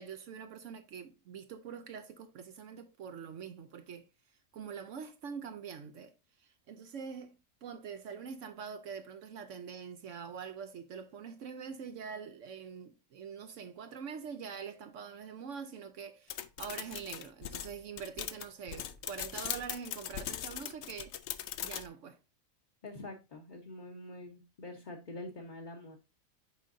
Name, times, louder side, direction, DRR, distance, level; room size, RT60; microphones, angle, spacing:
voice 1, 0.0-4.1 4.5-6.1 6.4-21.2 21.6-22.2, right 6 dB, 70° right, 1.0 m, -44 dB
sound 1, 16.3-21.9, left 10 dB, 65° left, 0.8 m, -40 dB
voice 2, 22.8-26.0, left 2 dB, 40° left, 1.0 m, -45 dB
8.2 x 5.2 x 2.6 m
omnidirectional pair, 1.4 m